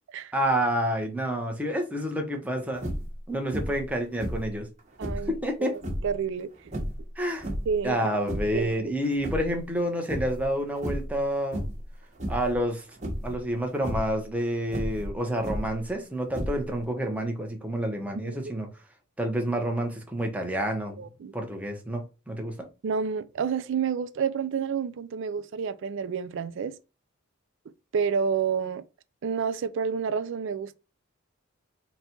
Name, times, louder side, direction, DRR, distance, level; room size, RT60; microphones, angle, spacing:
voice 1, 0.3-2.8 3.3-4.7 5.3-5.7 7.2-7.5 7.8-11.6 12.3-12.8 13.2-18.7 19.2-21.0 21.3-22.7, equal, 5° right, 0.8 m, -29 dB
sound 1, 2.7-3.2 3.5-3.9 4.2-5.3 5.8-6.1 6.7-7.8 8.1-8.7 9.0-9.8 10.1-10.5 10.8-11.2 11.5-11.9 12.2-12.6 13.0-13.4 13.7-14.1 14.7-15.8 16.3-16.8, equal, 35° right, 1.1 m, -33 dB
voice 2, 5.0-5.8 6.0-6.5 7.7-8.0 8.5-8.7 18.1-18.4 21.0-21.3 22.8-26.7 27.9-28.8 29.2-30.7, right 6 dB, 60° right, 0.4 m, -29 dB
4.0 x 2.3 x 4.3 m
head